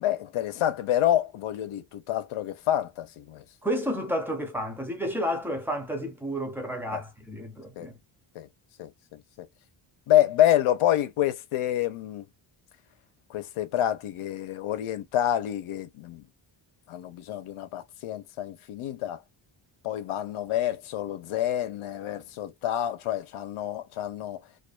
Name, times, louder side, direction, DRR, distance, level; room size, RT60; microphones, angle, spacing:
voice 1, 0.0-3.4 6.9-7.0 7.8-7.9 8.3-8.5 8.8-9.5 10.1-12.2 13.3-16.2 16.9-19.2 19.8-24.4, left 12 dB, 80° left, 0.7 m, -27 dB
voice 2, 3.6-8.0, equal, 5° right, 0.5 m, -31 dB
2.4 x 2.2 x 2.4 m
wide cardioid pair, 170°, 49 cm